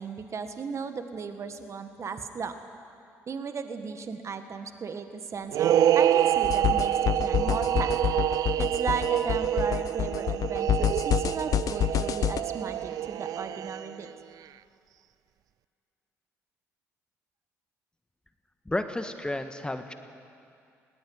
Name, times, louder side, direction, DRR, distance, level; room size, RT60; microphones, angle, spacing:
voice 1, 0.0-2.5 3.3-7.9 8.6-14.1, right 5 dB, 45° right, 8 dB, 1.6 m, -35 dB
sound 1, 5.5-14.1, right 11 dB, 65° right, 0.4 m, -27 dB
sound 2, 6.4-12.4, left 10 dB, 60° left, 0.7 m, -28 dB
voice 2, 18.6-19.9, left 1 dB, 15° left, 8 dB, 1.5 m, -31 dB
20.5 x 18.0 x 9.5 m, 2.5 s
supercardioid pair, 60°, 7 cm